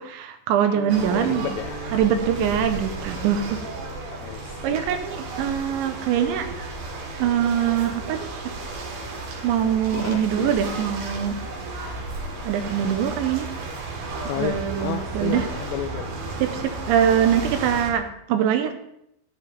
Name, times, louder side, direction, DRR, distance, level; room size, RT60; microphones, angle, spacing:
voice 1, 0.0-1.5 1.9-3.6 4.6-6.5 7.2-8.3 9.4-11.4 12.5-13.5 14.4-15.5 16.4-18.7, right 9 dB, 80° right, 7 dB, 3.0 m, -23 dB
sound 1, 0.7-9.1, equal, 50° left, 4.0 m, -43 dB
sound 2, 0.9-17.9, right 2 dB, 65° right, 3.8 m, -33 dB
voice 2, 1.1-2.0 4.2-4.8 9.9-10.6 14.3-16.1, left 12 dB, 85° left, 8 dB, 2.6 m, -32 dB
12.0 x 10.5 x 3.5 m, 0.79 s
omnidirectional pair, 5.5 m